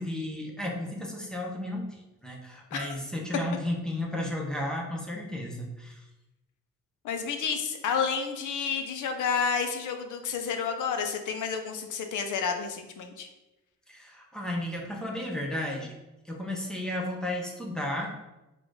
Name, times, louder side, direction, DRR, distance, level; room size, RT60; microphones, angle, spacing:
voice 1, 0.0-6.0 13.9-16.0 16.2-18.1, left 1 dB, ahead, -1 dB, 0.5 m, -33 dB
voice 2, 7.0-13.3, left 6 dB, 65° left, 5 dB, 0.6 m, -30 dB
3.9 x 2.5 x 4.6 m, 1.0 s
cardioid pair, 165°, 33 cm